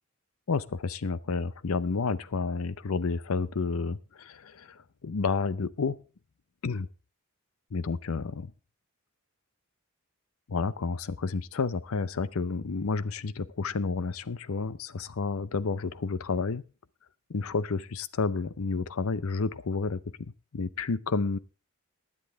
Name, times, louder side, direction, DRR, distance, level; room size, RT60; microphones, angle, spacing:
voice 1, 0.5-6.0 6.6-6.9 7.7-8.5 10.5-16.6 17.3-21.4, left 4 dB, 75° left, 18 dB, 0.6 m, -30 dB
16.0 x 10.0 x 3.5 m, 0.33 s
head